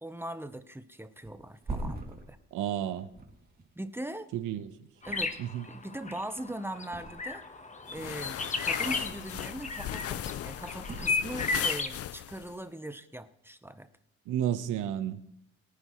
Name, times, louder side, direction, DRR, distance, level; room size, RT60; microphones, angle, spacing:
voice 1, 0.0-2.4 3.8-4.3 5.0-5.4 5.7-7.4 7.9-13.9, right 1 dB, 10° right, 1.0 m, -40 dB
Thump thud, 1.2-4.5 5.0-5.7 6.0-7.5 7.8-9.4 9.7-10.3 10.8-11.8 12.1-12.3, right 2 dB, 30° right, 2.8 m, -43 dB
voice 2, 2.5-3.1 4.3-4.7 5.4-5.7 14.3-15.2, right 10 dB, 85° right, 1.2 m, -31 dB
sound 1, 5.0-11.9, left 4 dB, 25° left, 1.3 m, -34 dB
sound 2, 7.9-12.5, left 12 dB, 50° left, 0.5 m, -38 dB
22.5 x 9.7 x 3.2 m
cardioid pair, 90°, 30 cm